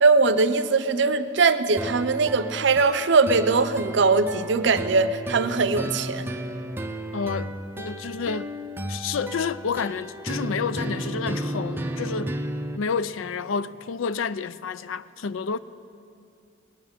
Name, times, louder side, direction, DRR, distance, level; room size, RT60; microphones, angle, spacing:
voice 1, 0.0-6.3, right 4 dB, 60° right, 0.6 m, -21 dB
sound 1, 1.8-12.8, right 1 dB, 10° right, 0.5 m, -33 dB
voice 2, 7.1-8.5 8.9-12.4 12.8-15.6, left 5 dB, 80° left, 0.5 m, -29 dB
19.0 x 7.2 x 9.7 m
head